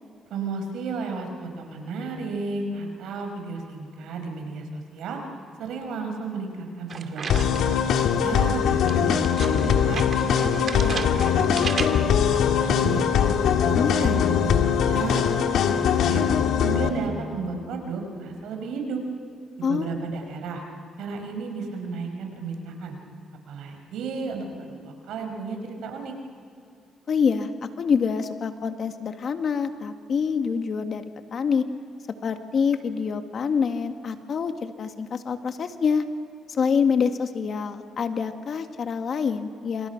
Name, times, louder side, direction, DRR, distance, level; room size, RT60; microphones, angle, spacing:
voice 1, 0.3-5.2 5.6-7.5 7.9-10.0 10.4-13.1 13.6-16.3 16.6-19.0 19.6-20.6 21.0-23.0 23.5-26.1, right 4 dB, 80° right, 4 dB, 5.3 m, -33 dB
sound 1, 6.9-7.9 8.9-12.2, right 5 dB, 50° right, 2.3 m, -35 dB
sound 2, 7.3-16.9, left 8 dB, 75° left, 1.9 m, -21 dB
voice 2, 13.7-14.2 19.6-19.9 27.1-31.0 31.3-31.7 32.2-36.1 36.5-39.9, left 6 dB, 55° left, 7 dB, 1.8 m, -26 dB
28.0 x 26.5 x 5.9 m, 2.4 s
cardioid pair, 90°, 0 cm